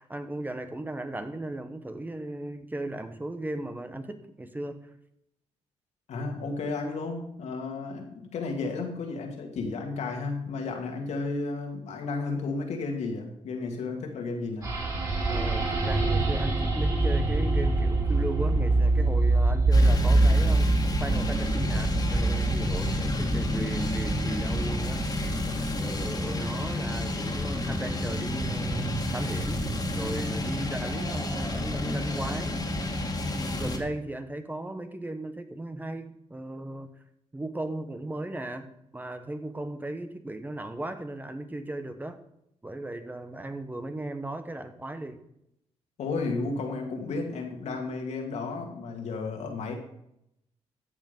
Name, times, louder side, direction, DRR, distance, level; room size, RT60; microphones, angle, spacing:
voice 1, 0.0-4.8 15.3-20.7 21.0-25.3 25.8-29.6 29.9-32.6 33.3-36.9 37.3-42.2 42.6-45.2, right 1 dB, 15° right, 8 dB, 1.2 m, -36 dB
voice 2, 6.1-14.8 46.0-49.7, left 3 dB, 80° left, 2 dB, 2.5 m, -33 dB
sound 1, 14.6-33.3, right 2 dB, 30° right, 4.9 m, -27 dB
sound 2, 19.7-33.8, left 2 dB, 35° left, 2.3 m, -31 dB
13.5 x 7.3 x 5.4 m, 0.78 s
cardioid pair, 85°, 12 cm